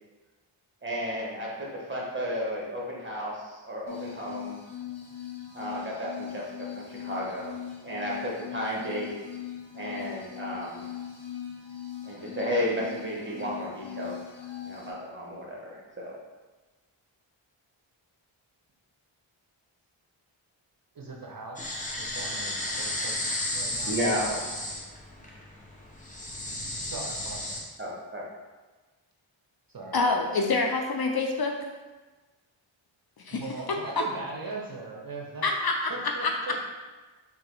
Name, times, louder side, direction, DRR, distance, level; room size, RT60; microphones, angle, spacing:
voice 1, 0.8-4.6 5.5-7.6 7.8-9.1 9.7-10.9 12.0-14.2 14.6-16.1 23.9-24.5 27.8-28.3, equal, 25° right, -4 dB, 1.4 m, -33 dB
sound 1, 3.9-14.9, left 10 dB, 75° left, 1.3 m, -40 dB
voice 2, 20.9-23.2 23.5-23.9 26.8-27.6 29.7-30.0 33.3-36.6, right 3 dB, 45° right, -1 dB, 0.7 m, -40 dB
sound 2, 21.6-27.6, left 1 dB, 15° left, 0.8 m, -33 dB
voice 3, 29.9-31.6 33.2-33.4 35.4-36.3, left 3 dB, 50° left, 2 dB, 0.5 m, -26 dB
3.8 x 2.9 x 4.6 m, 1.2 s
wide cardioid pair, 60°, 49 cm